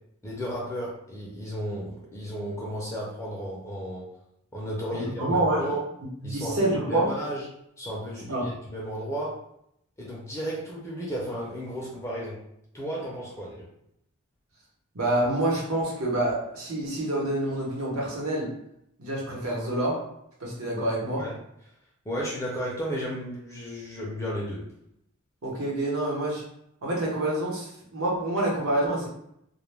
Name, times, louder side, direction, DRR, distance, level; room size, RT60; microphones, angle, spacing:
voice 1, 0.2-4.1 4.5-5.8 6.2-7.4 7.8-9.4 10.0-12.4 12.7-13.7 21.1-21.3 22.1-24.6, equal, 15° left, -5 dB, 0.4 m, -33 dB
voice 2, 4.8-5.7 6.2-7.1 8.3-8.5 14.9-18.5 19.0-20.0 20.4-21.2 25.4-26.4 26.8-29.1, right 1 dB, 80° right, -4 dB, 0.9 m, -27 dB
2.2 x 2.1 x 3.2 m, 0.75 s
head